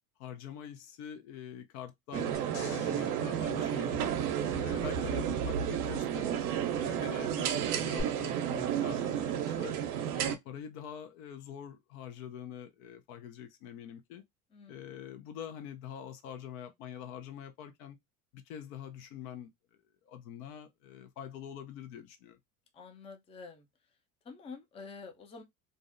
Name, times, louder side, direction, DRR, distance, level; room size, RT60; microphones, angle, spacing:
voice 1, 0.2-4.1 4.6-6.4 6.7-9.7 10.1-14.2 14.7-18.0 18.3-19.5 20.0-22.4, left 9 dB, 65° left, 0.7 m, -45 dB
sound 1, 2.1-10.4, right 9 dB, 75° right, 0.6 m, -32 dB
sound 2, 2.3-4.8 8.0-8.1, left 6 dB, 45° left, 1.0 m, -49 dB
voice 2, 4.5-5.2 14.5-15.0 22.7-23.7 24.2-25.4, left 4 dB, 15° left, 0.4 m, -48 dB
2.5 x 2.0 x 2.5 m
hypercardioid pair, 80°, 45 cm